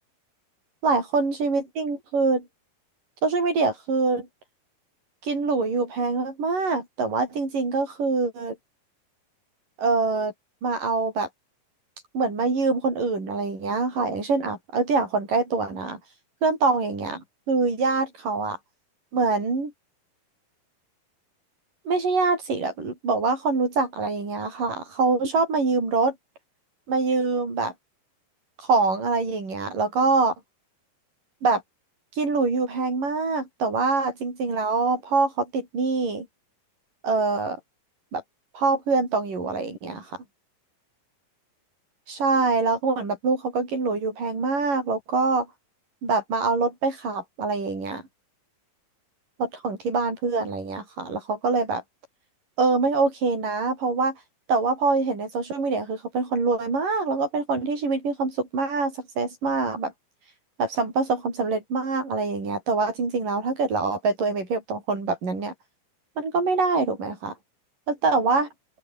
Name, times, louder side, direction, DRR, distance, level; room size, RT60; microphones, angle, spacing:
voice 1, 0.8-2.5 3.2-4.3 5.2-8.6 9.8-10.3 10.6-11.3 12.1-16.0 16.4-18.6 19.1-19.7 21.9-26.2 26.9-27.7 28.6-30.3 31.4-31.6 32.2-36.3 37.0-37.6 38.1-38.2 38.5-40.2 42.1-45.5 46.0-48.0 49.4-51.8 52.6-54.2 54.5-59.9 60.6-65.5 66.2-67.3 68.0-68.5, right 4 dB, 65° right, 9.5 m, -24 dB
open air
omnidirectional pair, 4.1 m